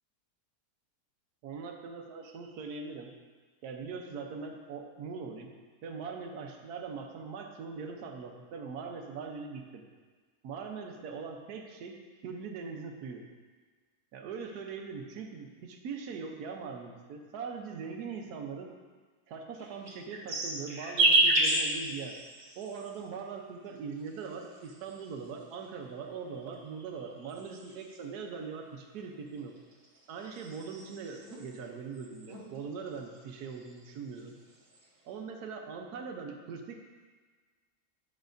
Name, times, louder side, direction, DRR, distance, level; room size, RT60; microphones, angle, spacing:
voice 1, 1.4-3.1 3.6-5.5 5.8-9.8 10.4-11.9 12.2-13.2 14.1-18.7 19.3-22.1 22.6-29.5 30.1-34.3 35.0-36.8, right 5 dB, 80° right, 3 dB, 1.3 m, -41 dB
sound 1, 19.5-23.0 23.9-25.3 26.1-28.0 29.4-31.5 31.9-32.4 32.7-33.8 34.2-34.8, right 2 dB, 60° right, 1.7 m, -31 dB
10.5 x 6.1 x 2.6 m, 1.5 s
omnidirectional pair, 1.7 m